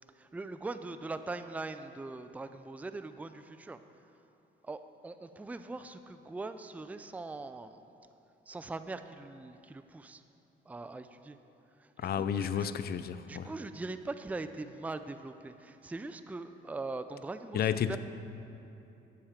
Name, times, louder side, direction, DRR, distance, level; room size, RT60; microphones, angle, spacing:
voice 1, 0.2-3.8 4.6-7.8 8.5-10.2 10.7-11.4 11.8-12.7 13.3-18.0, right 3 dB, 5° right, 10 dB, 0.4 m, -41 dB
voice 2, 12.0-13.5 17.5-18.0, left 8 dB, 50° left, 12 dB, 0.5 m, -31 dB
11.5 x 7.2 x 5.0 m, 2.9 s
cardioid pair, 90°, 20 cm